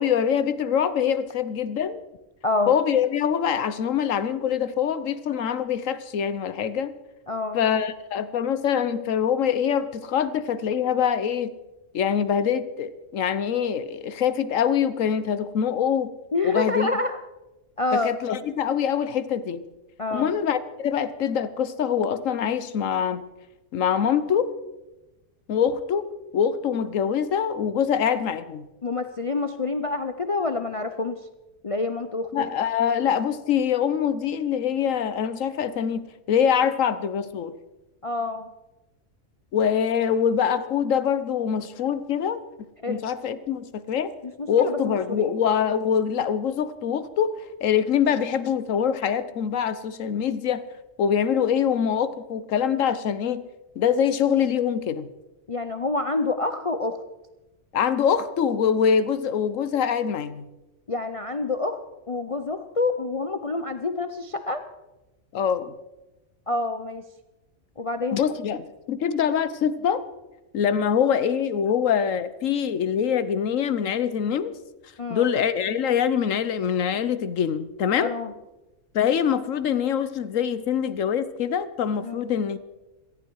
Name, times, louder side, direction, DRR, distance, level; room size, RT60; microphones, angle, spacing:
voice 1, 0.0-2.0 2.7-6.9 7.5-11.5 11.9-16.1 16.4-16.9 17.9-19.6 20.1-23.2 23.7-24.5 25.5-26.1 26.3-28.7 32.3-37.5 39.5-42.4 42.9-44.1 44.5-47.4 47.6-50.6 51.0-53.4 53.8-55.1 57.7-60.5 65.3-65.7 68.1-70.0 70.5-74.5 75.1-78.1 78.9-82.6, left 8 dB, 85° left, 14 dB, 1.3 m, -24 dB
voice 2, 2.4-2.7 7.3-7.6 16.3-17.2 17.8-18.1 20.0-20.3 28.8-31.2 31.6-32.5 38.0-38.5 42.8-43.1 44.2-45.3 55.5-57.0 60.9-61.8 62.1-64.6 66.5-67.0 67.8-68.2 75.0-75.3 78.0-78.3 82.0-82.2, left 3 dB, 35° left, 9 dB, 0.6 m, -27 dB
17.5 x 14.5 x 4.7 m, 1.0 s
omnidirectional pair, 1.3 m